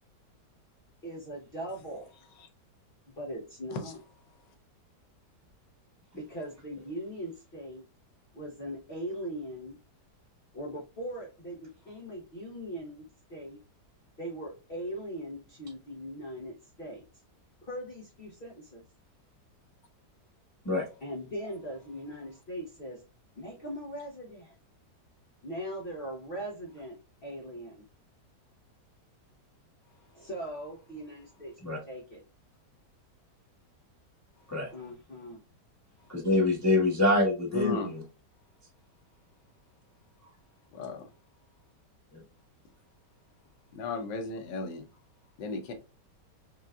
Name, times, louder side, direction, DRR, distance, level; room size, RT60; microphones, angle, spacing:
voice 1, 1.0-2.1 3.1-4.0 6.2-7.8 8.3-9.8 10.5-13.0 13.3-13.6 14.2-17.0 17.6-18.8 21.0-23.0 23.4-24.6 25.4-27.8 30.1-32.2 34.7-35.4, equal, 45° left, 0.8 m, -40 dB
voice 2, 36.1-37.8, left 2 dB, 10° left, 0.9 m, -25 dB
voice 3, 37.5-38.0 40.7-41.1 43.7-44.9 45.4-45.7, left 3 dB, 85° left, 1.4 m, -35 dB
5.4 x 2.4 x 2.3 m
omnidirectional pair, 1.9 m